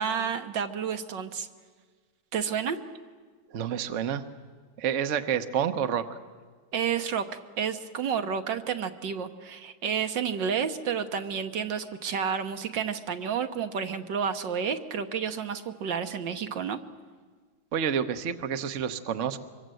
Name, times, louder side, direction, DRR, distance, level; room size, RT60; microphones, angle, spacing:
voice 1, 0.0-1.5 2.3-2.8 6.7-7.2 7.6-16.8, right 7 dB, 70° right, 7 dB, 1.8 m, -30 dB
voice 2, 3.5-4.2 4.8-6.1 17.7-19.4, right 8 dB, 50° right, 8 dB, 1.1 m, -28 dB
25.5 x 23.0 x 7.7 m, 1.5 s
omnidirectional pair, 2.1 m